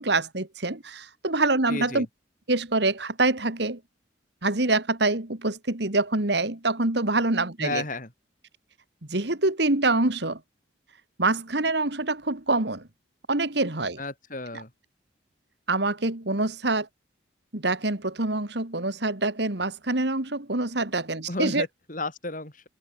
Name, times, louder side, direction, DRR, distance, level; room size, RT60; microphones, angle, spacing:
voice 1, 0.0-2.1 2.5-3.8 4.4-7.8 9.1-10.4 11.2-12.9 13.3-14.0 14.5-14.6 15.7-16.9 17.5-21.7, right 2 dB, 60° right, 2.0 m, -25 dB
voice 2, 1.7-2.1 7.6-8.1 14.0-14.7 21.3-22.7, left 2 dB, 40° left, 3.6 m, -33 dB
head